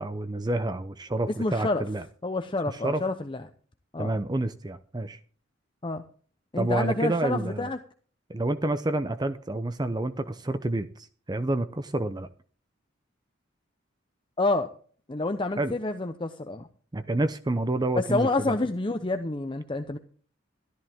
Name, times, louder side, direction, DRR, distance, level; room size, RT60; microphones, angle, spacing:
voice 1, 0.0-2.0 2.7-3.0 4.0-5.2 6.6-7.7 8.3-12.3 15.6-15.7 16.9-18.6, right 2 dB, 20° right, 11 dB, 0.6 m, -28 dB
voice 2, 1.3-1.8 2.2-3.4 3.9-4.2 5.8-6.0 6.5-7.8 14.4-14.7 15.1-16.7 18.0-20.0, left 2 dB, 25° left, 7 dB, 0.7 m, -28 dB
13.5 x 13.0 x 3.6 m, 0.43 s
head